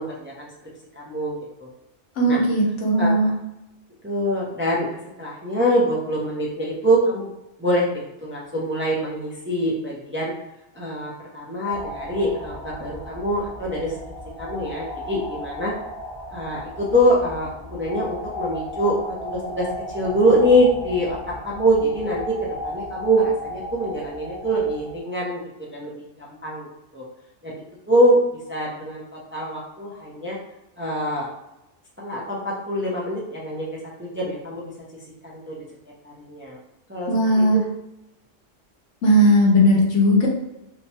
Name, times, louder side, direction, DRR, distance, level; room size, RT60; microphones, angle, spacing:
voice 1, 0.0-1.7 2.3-2.4 3.0-3.1 4.0-7.3 7.6-10.3 10.7-13.9 14.4-15.8 16.3-19.7 19.9-21.2 21.4-26.7 26.9-27.0 27.4-28.2 28.5-29.0 29.3-30.4 30.8-31.3 32.0-33.7 34.0-34.7 35.2-35.7 36.0-36.6 36.9-37.1 37.5-37.6, equal, 15° right, -4 dB, 0.5 m, -24 dB
voice 2, 2.2-3.3 37.1-37.6 39.0-40.3, equal, 85° left, -1 dB, 1.3 m, -17 dB
sound 1, 11.7-25.0, left 1 dB, 40° left, 0.8 m, -35 dB
3.3 x 2.9 x 2.8 m, 0.90 s
omnidirectional pair, 1.2 m